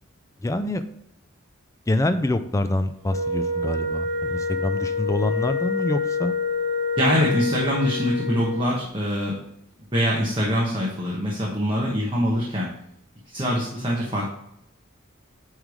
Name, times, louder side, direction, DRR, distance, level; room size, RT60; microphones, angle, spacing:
voice 1, 0.4-0.8 1.9-6.3, left 1 dB, 15° left, 10 dB, 0.4 m, -25 dB
Wind instrument woodwind instrument, 3.1-8.7, left 3 dB, 75° right, 1.5 m, -27 dB
voice 2, 7.0-9.4 9.9-12.7 13.3-14.3, equal, 25° right, -4 dB, 1.1 m, -24 dB
9.0 x 3.3 x 4.9 m, 0.77 s
head